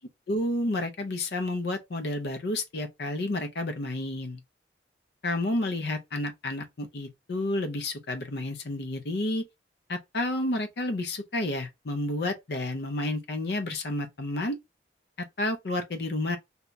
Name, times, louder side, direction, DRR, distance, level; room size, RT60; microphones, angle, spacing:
voice 1, 0.3-4.4 5.2-9.4 9.9-14.6 15.2-16.4, left 2 dB, 60° left, 0.6 m, -30 dB
2.8 x 2.3 x 3.8 m
head